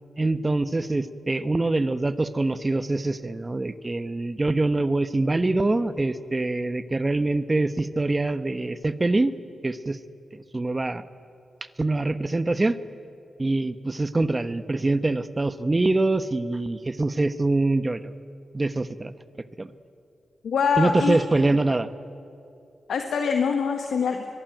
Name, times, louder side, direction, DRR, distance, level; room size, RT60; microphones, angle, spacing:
voice 1, 0.2-9.3 9.6-10.0 10.3-11.0 11.8-12.8 13.4-18.1 18.5-19.1 19.6-19.7 20.8-21.9, right 2 dB, 30° right, 12 dB, 1.2 m, -24 dB
voice 2, 20.4-21.2 22.9-24.3, left 6 dB, 80° left, 5 dB, 1.6 m, -24 dB
22.5 x 22.5 x 9.2 m, 2.6 s
cardioid pair, 55°, 0 cm